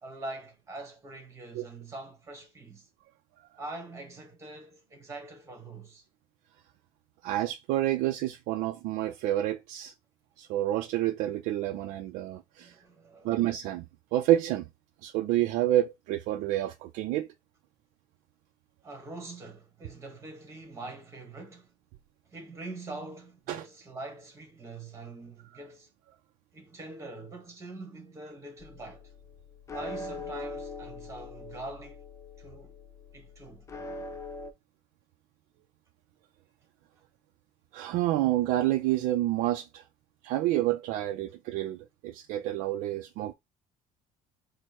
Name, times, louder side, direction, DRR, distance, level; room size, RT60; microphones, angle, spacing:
voice 1, 0.0-2.9 3.6-6.0 12.6-13.5 18.8-21.7 22.3-25.9 26.5-29.1 29.7-32.0 32.4-32.8 33.1-33.7, right 2 dB, 20° right, 1.4 m, -43 dB
voice 2, 7.2-9.9 10.4-12.7 13.2-13.9 14.1-14.6 15.0-17.3 23.5-23.6 37.7-39.8 40.2-43.3, right 14 dB, 80° right, 0.5 m, -28 dB
sound 1, 28.6-34.5, left 2 dB, 20° left, 0.5 m, -42 dB
4.5 x 2.1 x 4.3 m
cardioid pair, 145°, 13 cm